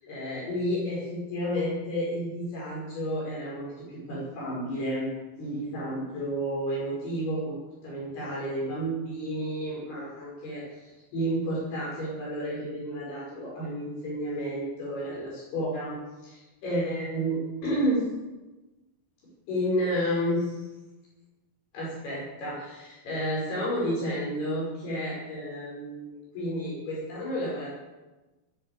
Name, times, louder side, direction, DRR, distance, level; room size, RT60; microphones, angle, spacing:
voice 1, 0.0-5.1 5.4-7.6 7.8-16.0 16.2-18.1 19.5-20.6 21.7-27.7, equal, 75° left, -6 dB, 7.5 m, -31 dB
20.0 x 7.7 x 8.3 m, 1.1 s
omnidirectional pair, 4.6 m